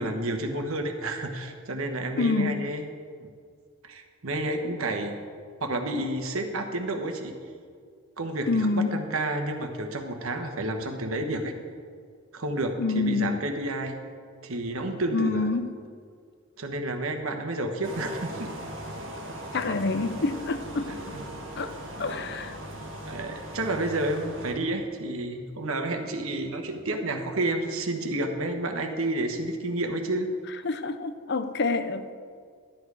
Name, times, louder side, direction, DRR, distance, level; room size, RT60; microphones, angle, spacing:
voice 1, 0.0-2.9 3.2-3.3 3.8-5.1 5.6-7.4 8.2-11.5 12.3-14.0 14.4-15.5 16.6-18.5 20.9-21.2 22.0-22.3 23.1-30.3, right 2 dB, 85° right, 5 dB, 1.2 m, -30 dB
voice 2, 2.2-2.7 8.5-8.9 12.8-13.3 15.1-15.7 19.5-20.9 21.6-21.7 22.0-22.6 30.6-32.1, left 3 dB, 55° left, 10 dB, 0.6 m, -27 dB
sound 1, 17.8-24.5, equal, 60° right, 1.6 m, -39 dB
12.0 x 8.9 x 4.8 m, 2.1 s
head